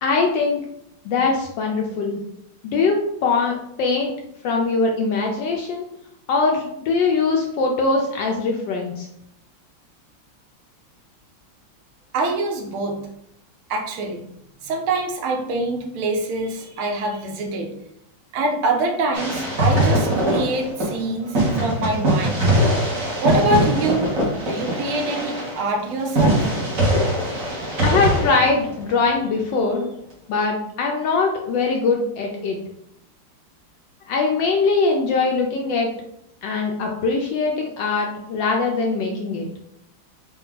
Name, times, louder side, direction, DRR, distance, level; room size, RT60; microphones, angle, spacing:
voice 1, 0.0-0.6 1.0-2.2 2.6-4.1 4.4-5.9 6.3-9.1 27.8-29.8 30.3-32.6 34.1-35.9 36.4-39.5, left 4 dB, 75° left, 1 dB, 1.1 m, -22 dB
voice 2, 12.1-13.1 13.7-14.3 14.6-17.7 18.3-22.4 23.2-24.2 24.5-26.5, right 2 dB, 85° right, 3 dB, 1.5 m, -24 dB
sound 1, 19.1-21.0 21.3-29.1, right 1 dB, 45° right, 1.2 m, -21 dB
4.4 x 2.3 x 3.7 m, 0.77 s
omnidirectional pair, 2.4 m